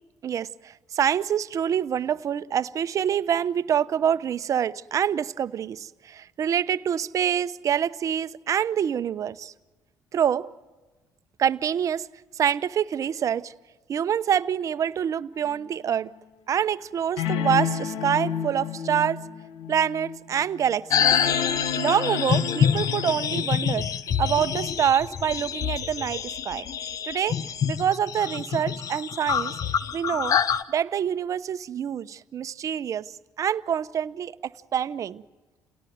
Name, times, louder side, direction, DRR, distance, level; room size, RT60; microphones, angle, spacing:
voice 1, 0.9-9.5 10.1-10.5 11.4-12.1 12.3-13.5 13.9-16.1 16.5-19.3 19.7-21.1 21.8-23.9 24.2-26.7 27.0-27.4 27.6-29.5 29.9-30.4 30.7-33.0 33.4-34.3 34.7-35.2, right 9 dB, 50° right, 0.9 m, -26 dB
sound 1, 15.5-15.6 17.2-23.1, left 8 dB, 80° left, 1.7 m, -30 dB
sound 2, 20.9-30.6, left 8 dB, 55° left, 1.1 m, -26 dB
30.0 x 18.0 x 8.0 m
supercardioid pair, 70°, 7 cm